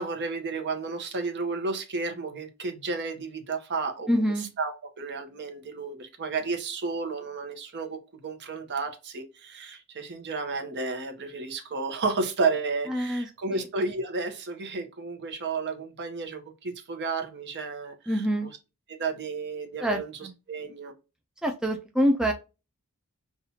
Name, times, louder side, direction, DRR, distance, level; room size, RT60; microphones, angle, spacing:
voice 1, 0.0-4.1 4.6-4.7 5.0-17.9 19.0-20.1 20.5-20.9, right 4 dB, 50° right, 0.8 m, -32 dB
voice 2, 4.1-4.5 12.9-13.7 18.1-18.5 19.8-20.3 21.4-22.3, equal, 5° right, 0.3 m, -26 dB
5.6 x 2.4 x 2.7 m
head